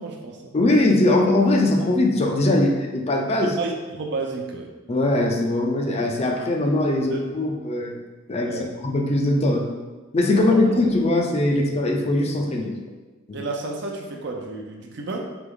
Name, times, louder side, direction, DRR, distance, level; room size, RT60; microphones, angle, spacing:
voice 1, 0.0-0.6 3.6-4.7 7.1-7.2 8.5-8.7 10.5-10.7 13.3-15.4, right 3 dB, 60° right, 1 dB, 0.6 m, -31 dB
voice 2, 0.5-3.6 4.9-8.0 8.3-9.7 10.1-12.7 13.3-13.4, left 2 dB, 30° left, 1 dB, 0.5 m, -21 dB
3.4 x 3.4 x 3.8 m, 1.3 s
head